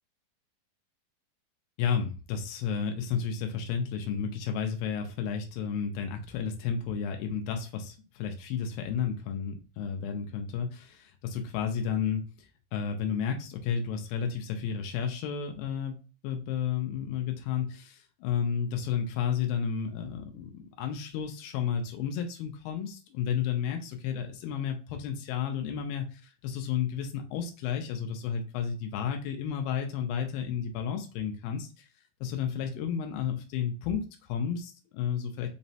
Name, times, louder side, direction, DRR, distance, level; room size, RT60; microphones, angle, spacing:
voice 1, 1.8-12.2 12.7-31.9 32.2-35.5, left 7 dB, 90° left, 4 dB, 2.4 m, -32 dB
6.0 x 2.0 x 2.7 m, 0.34 s
omnidirectional pair, 4.1 m